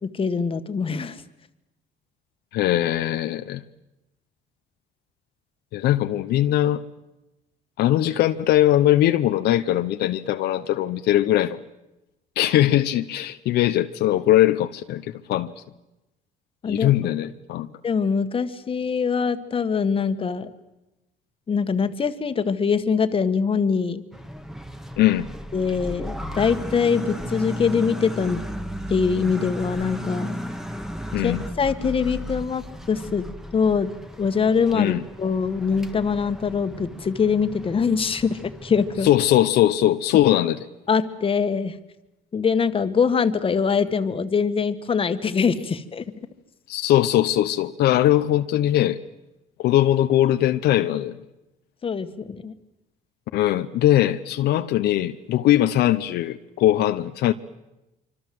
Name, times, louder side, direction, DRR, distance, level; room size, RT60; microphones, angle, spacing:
voice 1, 0.0-1.2 16.6-16.9 17.8-20.5 21.5-24.0 25.5-28.4 28.9-30.3 31.2-33.2 33.5-33.9 34.2-39.1 40.9-41.7 42.3-46.0 51.8-52.5, left 6 dB, 30° left, 1.7 m, -23 dB
voice 2, 2.5-3.6 5.7-6.8 7.8-11.6 12.4-15.0 15.3-15.5 16.7-17.7 25.0-25.3 31.1-31.4 34.7-35.0 39.0-40.6 46.7-49.0 49.6-51.2 53.3-57.3, left 13 dB, 75° left, 1.0 m, -20 dB
sound 1, 24.1-39.3, equal, ahead, 1.7 m, -35 dB
25.5 x 25.5 x 7.8 m
cardioid pair, 110°, 17 cm